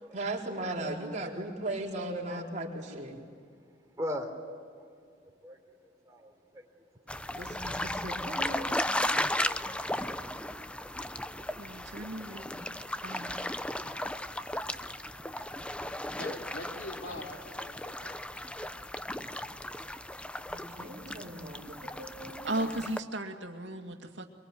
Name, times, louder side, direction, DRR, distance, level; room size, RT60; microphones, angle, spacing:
voice 1, 0.1-3.2 7.3-8.7 20.5-21.6 22.0-22.6, right 1 dB, 40° right, -1 dB, 4.4 m, -37 dB
voice 2, 4.0-4.3 5.4-5.6 6.1-6.6 8.5-8.7 9.0-9.6, left 1 dB, 20° right, 2 dB, 3.6 m, -39 dB
sound 1, 7.1-23.0, left 1 dB, 5° left, 0.7 m, -36 dB
voice 3, 11.6-13.5 22.4-24.3, right 1 dB, 80° right, 4 dB, 2.3 m, -37 dB
voice 4, 15.8-18.2, left 2 dB, 75° left, 2 dB, 3.4 m, -43 dB
24.0 x 24.0 x 9.4 m, 2.2 s
head